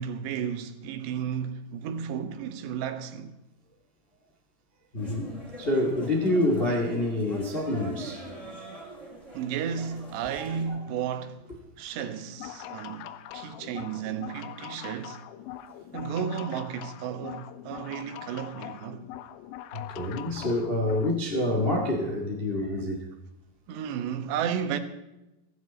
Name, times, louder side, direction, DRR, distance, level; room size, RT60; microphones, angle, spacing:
voice 1, 0.0-3.3 9.3-11.4 11.8-15.2 15.9-19.0 23.7-24.8, right 8 dB, 75° right, 3.2 m, -33 dB
voice 2, 4.9-8.5 10.7-10.8 19.7-23.1, left 1 dB, 70° left, 0.5 m, -27 dB
sound 1, 5.0-10.6, right 2 dB, 10° left, 3.6 m, -43 dB
sound 2, 12.3-21.2, left 12 dB, 90° left, 3.2 m, -42 dB
16.0 x 15.5 x 4.3 m
omnidirectional pair, 5.2 m